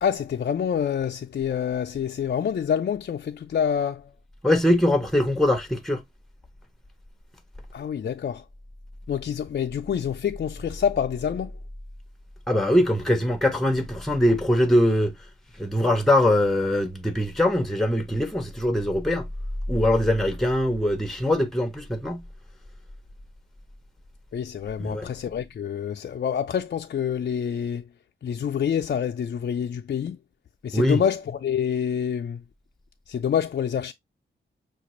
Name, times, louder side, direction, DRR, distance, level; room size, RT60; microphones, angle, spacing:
voice 1, 0.0-4.1 7.7-8.4 9.1-11.5 24.3-27.8 28.2-30.2 30.6-32.4 33.1-33.9, left 8 dB, 55° left, 0.4 m, -27 dB
voice 2, 4.4-6.0 12.5-15.1 15.6-19.3 19.7-22.2 24.8-25.1 30.7-31.0, left 1 dB, ahead, 0.7 m, -22 dB
5.8 x 2.4 x 3.0 m
wide cardioid pair, 125°, 21 cm